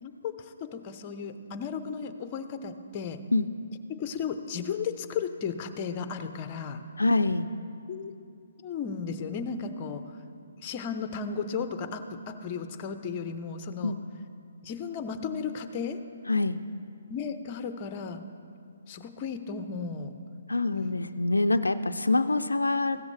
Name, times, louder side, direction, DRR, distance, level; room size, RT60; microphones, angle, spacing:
voice 1, 0.0-3.2 4.0-6.8 7.9-8.1 8.6-10.0 10.6-14.0 14.6-16.0 17.1-18.2 18.9-20.1 20.7-21.0, left 6 dB, 30° left, 9 dB, 0.7 m, -35 dB
voice 2, 7.0-7.5 13.8-14.0 16.3-16.6 20.5-23.0, left 2 dB, 90° left, 10 dB, 0.4 m, -25 dB
15.5 x 13.5 x 3.3 m, 2.5 s
figure-of-eight pair, 135°, 0 cm